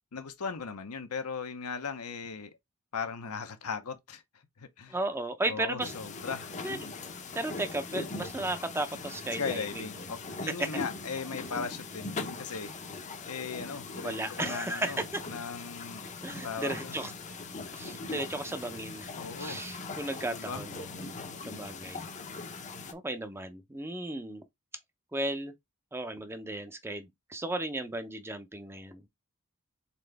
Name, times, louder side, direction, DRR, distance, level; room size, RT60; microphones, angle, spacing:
voice 1, 0.1-2.5 2.9-4.2 4.6-5.0 5.5-6.5 9.3-12.7 13.3-15.0 15.3-16.0 16.4-17.0 19.2-19.6 20.3-20.6, left 5 dB, 80° left, 0.8 m, -37 dB
voice 2, 4.9-5.9 6.6-6.9 7.3-9.9 10.6-10.7 14.0-15.2 16.2-17.1 17.7-21.0 21.5-22.1 22.9-24.4 25.1-25.5 25.9-29.1, right 2 dB, 10° right, 0.6 m, -35 dB
sound 1, 5.8-22.9, left 3 dB, 35° left, 0.6 m, -41 dB
4.1 x 3.7 x 3.3 m
head